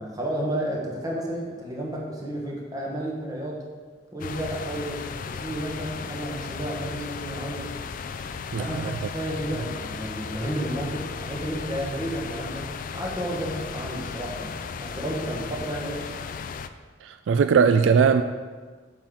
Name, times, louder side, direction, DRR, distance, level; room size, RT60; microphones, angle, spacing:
voice 1, 0.0-3.6 4.1-7.7 8.6-16.1, right 1 dB, 20° right, -2 dB, 1.4 m, -32 dB
sound 1, 4.2-16.7, left 5 dB, 45° left, 0.3 m, -35 dB
voice 2, 8.5-9.0 17.0-18.2, right 6 dB, 75° right, 9 dB, 0.3 m, -20 dB
8.6 x 6.0 x 3.8 m, 1.5 s
head